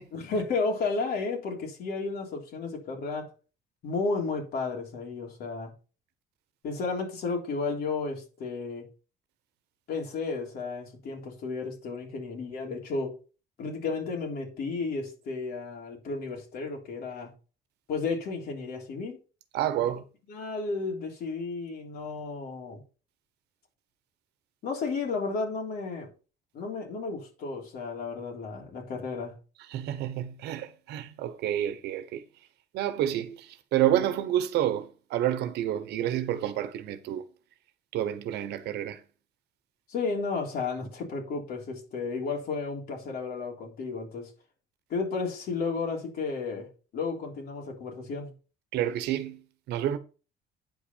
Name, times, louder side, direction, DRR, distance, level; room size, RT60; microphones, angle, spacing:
voice 1, 0.1-3.3 3.8-5.7 6.6-8.8 9.9-13.1 13.6-17.3 17.9-19.2 20.3-22.8 24.6-26.1 26.5-29.3 39.9-44.3 44.9-46.7 46.9-48.3, left 4 dB, 65° left, 3.6 m, -33 dB
voice 2, 19.5-20.0 29.7-32.2 32.7-37.3 37.9-39.0 48.7-50.0, right 11 dB, 80° right, 1.1 m, -29 dB
9.4 x 5.2 x 5.5 m
cardioid pair, 110°, 17 cm